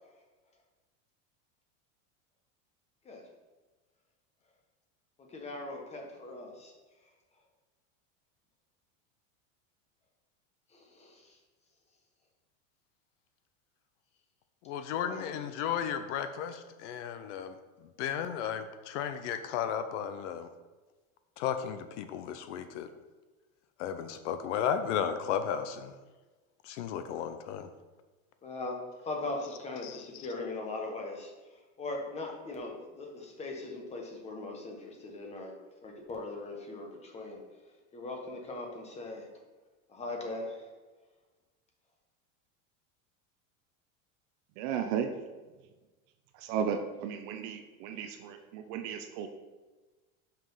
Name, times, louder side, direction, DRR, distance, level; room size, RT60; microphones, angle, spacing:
voice 1, 5.2-6.7 10.7-11.4 15.0-15.4 28.4-28.8 29.0-35.5 35.8-37.4 37.9-39.3 39.9-40.7, left 2 dB, 15° left, 1 dB, 1.1 m, -40 dB
voice 2, 14.7-17.5 18.0-20.5 21.4-22.9 23.8-25.9 26.6-27.7 29.8-30.0, left 8 dB, 60° left, 10 dB, 0.6 m, -34 dB
voice 3, 44.6-45.1 46.3-49.3, right 7 dB, 40° right, 7 dB, 0.5 m, -34 dB
5.8 x 5.0 x 5.5 m, 1.2 s
supercardioid pair, 160°, 40 cm